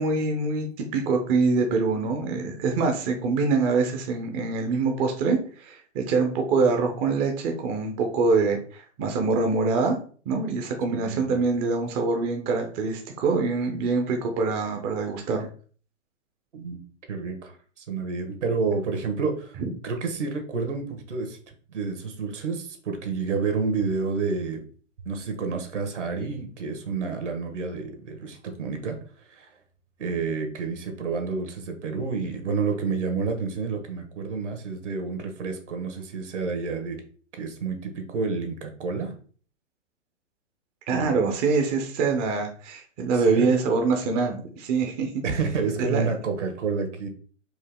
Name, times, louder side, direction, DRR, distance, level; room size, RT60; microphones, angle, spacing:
voice 1, 0.0-10.0 10.3-15.5 40.9-45.1 45.9-46.0, right 4 dB, 20° right, 3 dB, 0.4 m, -24 dB
voice 2, 10.9-11.4 16.5-16.8 17.1-19.6 19.8-24.6 25.0-29.0 29.3-29.5 30.0-37.0 37.3-39.2 40.9-41.2 43.1-43.5 45.2-47.1, right 4 dB, 75° right, 5 dB, 1.3 m, -29 dB
4.6 x 2.8 x 3.4 m, 0.42 s
hypercardioid pair, 130°, 36 cm